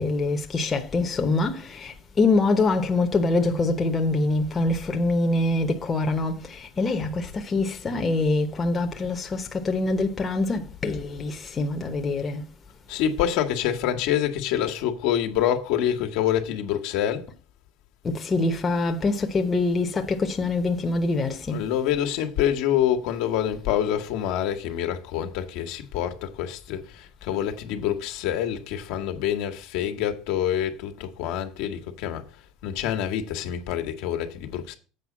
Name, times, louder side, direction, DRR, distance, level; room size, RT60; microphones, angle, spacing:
voice 1, 0.0-12.4 18.0-21.6, left 3 dB, 20° left, 0.9 m, -24 dB
voice 2, 12.9-17.3 21.5-32.2 32.6-34.7, left 10 dB, 70° left, 1.4 m, -26 dB
7.8 x 5.0 x 7.2 m
cardioid pair, 145°, 0 cm